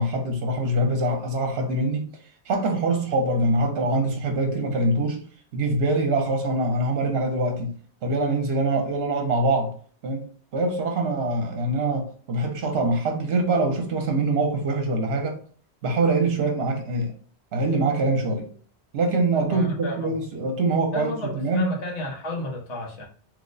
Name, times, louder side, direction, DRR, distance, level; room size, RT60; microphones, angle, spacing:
voice 1, 0.0-2.1 2.5-5.2 5.5-7.7 8.0-9.7 10.0-10.2 10.5-15.4 15.8-17.1 17.5-18.5 18.9-21.7, right 2 dB, 70° right, 0.9 m, -24 dB
voice 2, 19.5-20.2 20.9-23.1, left 1 dB, 90° left, 1.2 m, -32 dB
3.1 x 2.1 x 3.8 m
omnidirectional pair, 1.2 m